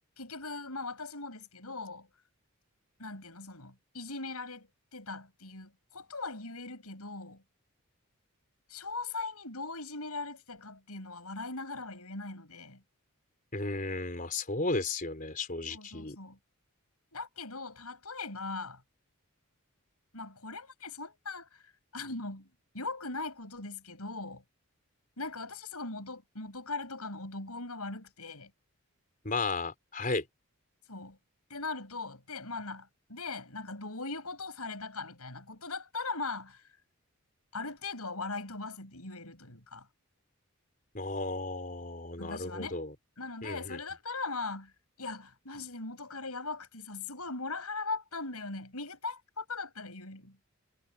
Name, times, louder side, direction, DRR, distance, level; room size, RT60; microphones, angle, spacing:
voice 1, 0.2-2.1 3.0-7.4 8.7-12.8 15.7-16.4 17.1-18.8 20.1-21.6 21.9-22.5 22.7-24.4 25.2-28.5 30.9-31.2 31.5-36.6 37.5-39.9 42.2-42.8 43.2-44.7 45.0-50.4, left 3 dB, 90° left, 6.5 m, -40 dB
voice 2, 13.5-16.2 29.2-30.2 40.9-42.9 43.4-43.8, left 3 dB, 40° left, 4.6 m, -34 dB
head